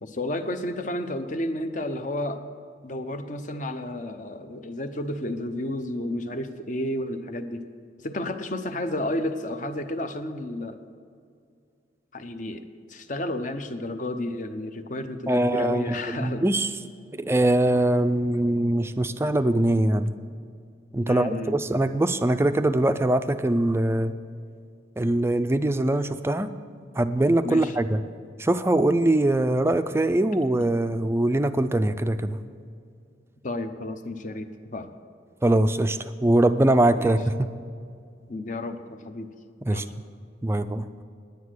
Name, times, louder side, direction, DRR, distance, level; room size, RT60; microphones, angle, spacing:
voice 1, 0.0-2.4 2.8-7.7 8.0-10.8 12.1-16.4 21.1-21.5 27.4-27.8 33.4-34.9 37.0-37.2 38.3-39.3 39.7-39.9, left 1 dB, 45° left, 8 dB, 0.8 m, -31 dB
voice 2, 15.3-16.7 17.1-20.1 20.9-24.1 25.0-26.5 27.0-28.0 28.4-32.4 35.4-37.5 39.7-39.9 40.4-40.9, right 1 dB, 15° right, 10 dB, 0.4 m, -22 dB
10.5 x 9.5 x 6.4 m, 2.3 s
head